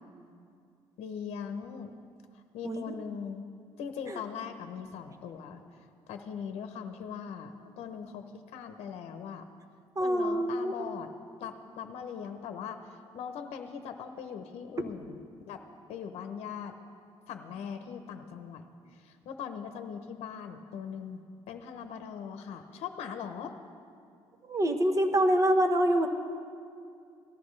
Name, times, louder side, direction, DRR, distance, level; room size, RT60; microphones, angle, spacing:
voice 1, 1.0-1.9 2.5-3.5 3.8-5.6 6.1-9.4 10.0-11.1 11.4-15.2 15.5-15.6 15.9-16.8 17.3-18.6 19.0-23.5, left 7 dB, 85° left, 7 dB, 0.8 m, -40 dB
voice 2, 10.0-10.9 24.4-26.1, right 1 dB, 30° right, 6 dB, 1.0 m, -26 dB
18.0 x 13.5 x 3.2 m, 2.4 s
cardioid pair, 125°, 10 cm